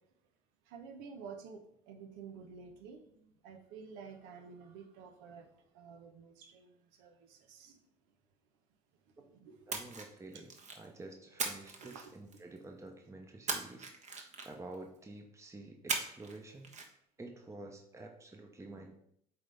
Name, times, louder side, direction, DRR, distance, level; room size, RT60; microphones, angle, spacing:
voice 1, 0.7-7.8 9.2-9.9 10.3-10.4 11.8-12.1, right 6 dB, 80° right, 1.0 m, -51 dB
voice 2, 9.7-10.5 10.7-19.0, right 2 dB, 15° right, 0.9 m, -50 dB
Splash splatter, 9.7-10.9 11.4-12.6 13.5-14.7 15.9-16.4 16.6-16.9, right 4 dB, 40° right, 1.2 m, -39 dB
7.9 x 3.9 x 3.5 m
supercardioid pair, 80°, 19 cm